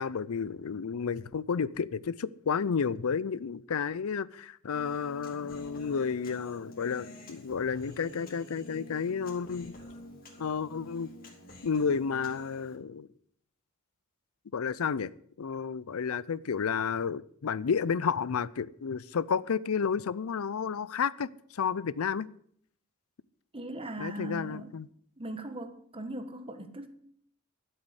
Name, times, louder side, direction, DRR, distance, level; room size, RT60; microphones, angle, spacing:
voice 1, 0.0-9.7 10.4-11.1 11.6-13.1 14.5-15.1 15.4-22.3 24.0-24.9, left 6 dB, 85° left, 0.5 m, -31 dB
Human voice, 4.7-12.8, left 1 dB, 45° left, 3.1 m, -49 dB
voice 2, 23.5-24.7 25.2-26.9, right 1 dB, 25° right, 1.4 m, -39 dB
12.0 x 8.0 x 8.0 m
head